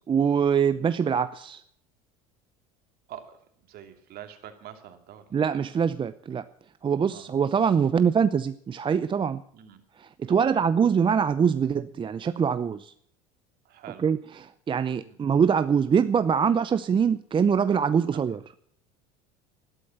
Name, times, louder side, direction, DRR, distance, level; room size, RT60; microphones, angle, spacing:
voice 1, 0.1-1.6 5.3-6.4 6.8-9.4 10.0-12.9 14.0-18.4, right 7 dB, 25° right, 13 dB, 0.6 m, -24 dB
voice 2, 3.7-5.4 7.1-7.3 9.5-9.8 10.3-10.7 13.6-14.0 15.1-15.2 18.1-18.2, right 10 dB, 55° right, 7 dB, 2.6 m, -45 dB
12.5 x 12.0 x 7.0 m, 0.66 s
hypercardioid pair, 85°, 19 cm